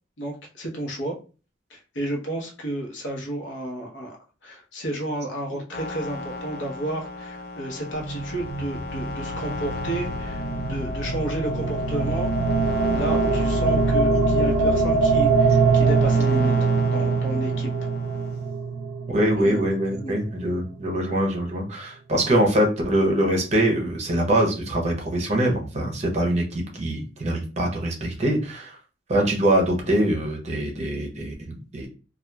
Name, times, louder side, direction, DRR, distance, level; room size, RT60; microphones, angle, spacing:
voice 1, 0.2-1.2 1.7-4.2 4.4-10.4 10.7-12.3 12.9-16.5 16.9-17.7 19.4-19.6 20.0-20.1, right 1 dB, 75° left, 0 dB, 0.8 m, -31 dB
sound 1, 5.7-18.4, left 3 dB, 55° left, 0.4 m, -36 dB
sound 2, 7.9-20.2, right 4 dB, 80° right, 0.4 m, -23 dB
voice 2, 19.1-28.8 29.1-31.9, right 1 dB, 35° right, 1 dB, 0.6 m, -23 dB
2.8 x 2.3 x 2.2 m, 0.34 s
head